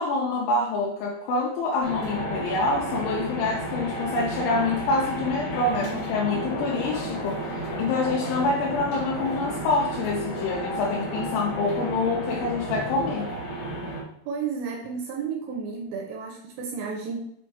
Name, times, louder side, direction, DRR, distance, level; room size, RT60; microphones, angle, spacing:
voice 1, 0.0-13.3, left 3 dB, 80° left, -2 dB, 2.8 m, -26 dB
sound 1, 1.8-14.0, right 1 dB, 65° left, 1.6 m, -32 dB
voice 2, 14.3-17.2, right 5 dB, 90° right, 1 dB, 2.5 m, -32 dB
7.8 x 3.1 x 4.5 m, 0.75 s
omnidirectional pair, 5.9 m